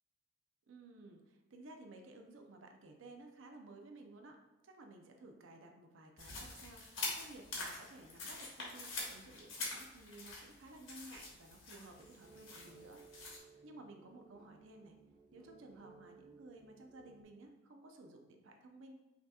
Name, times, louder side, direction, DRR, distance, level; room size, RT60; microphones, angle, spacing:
voice 1, 0.7-4.4 4.6-6.8 7.1-13.0 13.6-15.0 15.3-18.9, right 2 dB, 75° right, 3 dB, 0.5 m, -55 dB
sound 1, 6.2-13.4, left 3 dB, 90° left, 1.2 m, -45 dB
sound 2, 11.9-17.2, right 5 dB, ahead, 1.0 m, -61 dB
5.8 x 2.8 x 2.3 m, 1.2 s
head